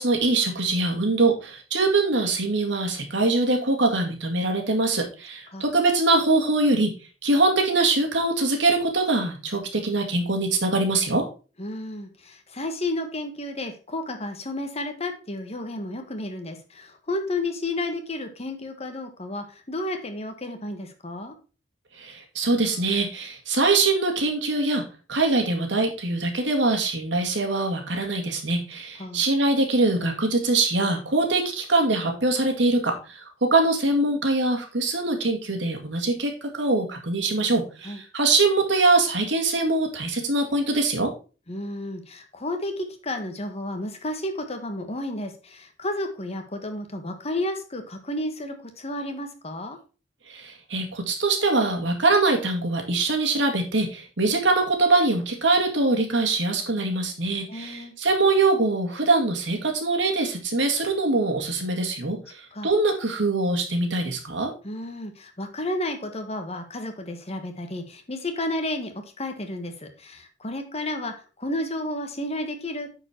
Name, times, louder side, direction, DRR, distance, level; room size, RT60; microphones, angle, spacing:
voice 1, 0.0-6.9 7.2-11.2 22.0-24.8 25.1-41.1 50.3-64.5, right 2 dB, 80° right, 3 dB, 2.2 m, -23 dB
voice 2, 11.6-21.3 29.0-29.2 37.8-38.0 41.5-49.8 57.5-57.9 62.5-62.7 64.6-71.1 71.4-72.9, left 1 dB, 35° left, 6 dB, 1.4 m, -32 dB
9.6 x 4.8 x 4.5 m, 0.34 s
head